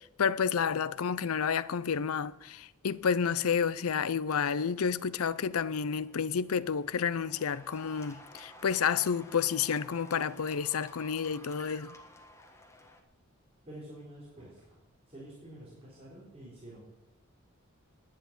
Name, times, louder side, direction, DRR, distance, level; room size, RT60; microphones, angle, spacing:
voice 1, 0.2-11.9, left 6 dB, 80° left, 0.5 m, -30 dB
Cheering / Applause, 3.4-13.0, left 1 dB, 15° left, 1.4 m, -54 dB
voice 2, 13.7-14.8 15.1-16.8, right 1 dB, 30° right, 4.1 m, -48 dB
10.5 x 9.1 x 8.9 m
head